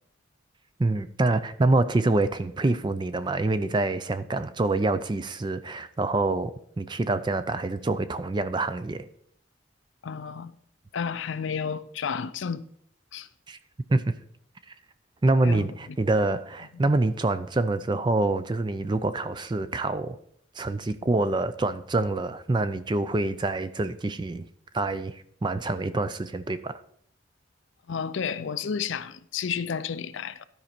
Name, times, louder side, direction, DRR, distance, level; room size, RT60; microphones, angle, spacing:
voice 1, 0.8-9.1 13.5-13.6 13.9-14.1 15.2-20.2 20.6-24.5 24.7-26.8, right 2 dB, 20° right, 0.4 m, -26 dB
voice 2, 10.0-10.5 10.9-12.6 13.1-13.3 15.4-15.7 27.9-30.4, left 6 dB, 70° left, 0.5 m, -31 dB
12.5 x 5.2 x 4.4 m
head